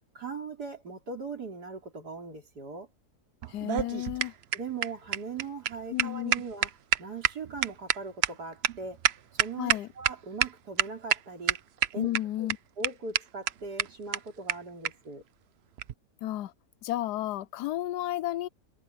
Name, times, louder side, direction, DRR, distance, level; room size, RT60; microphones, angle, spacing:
voice 1, 0.1-2.9 4.5-6.7 7.0-9.0 9.3-11.6 11.9-12.1 12.4-12.5 12.8-15.2, right 4 dB, 80° right, 4.3 m, -39 dB
sound 1, 3.4-10.1 10.4-10.5 10.8-11.2 11.5-12.2 12.5-12.6 12.8-12.9 13.1-13.2 13.5-13.6 13.8-13.9 14.1-14.2 14.5-14.6 14.8-14.9 15.8-15.9, right 10 dB, 55° right, 0.7 m, -26 dB
voice 2, 3.5-4.3 5.9-6.3 9.6-9.9 11.9-12.6 16.2-16.5 16.8-18.5, left 14 dB, 85° left, 1.2 m, -32 dB
omnidirectional pair, 1.7 m